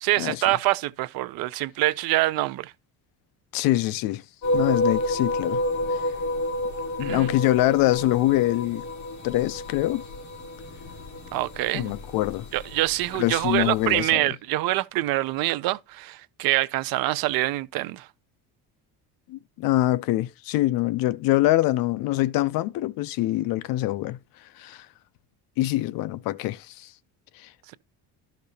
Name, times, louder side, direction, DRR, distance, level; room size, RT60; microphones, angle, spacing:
voice 1, 0.0-2.7 7.0-7.3 11.3-11.9 12.5-18.1, right 17 dB, 65° right, 0.5 m, -25 dB
voice 2, 3.5-4.2 4.5-5.6 5.9-6.0 7.0-8.8 9.2-10.0 11.7-12.5 13.2-14.3 19.3-24.2 24.6-24.9 25.6-26.9, left 16 dB, 65° left, 0.5 m, -24 dB
sound 1, 4.4-14.0, left 1 dB, 45° left, 2.3 m, -30 dB
13.0 x 5.2 x 2.8 m
cardioid pair, 170°, 38 cm